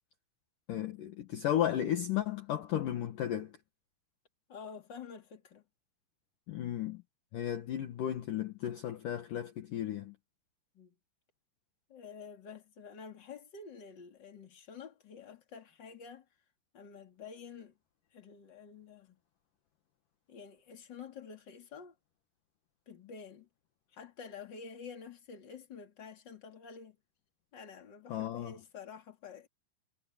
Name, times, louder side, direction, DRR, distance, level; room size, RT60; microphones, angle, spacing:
voice 1, 0.7-3.5 6.5-7.0 7.3-10.1 28.1-28.6, left 11 dB, 70° left, 2.0 m, -34 dB
voice 2, 4.5-5.6 10.7-10.9 11.9-16.2 16.7-17.8 18.1-19.2 20.3-21.9 22.9-23.5 23.9-27.0 27.5-29.5, left 6 dB, 30° left, 2.5 m, -49 dB
omnidirectional pair, 6.0 m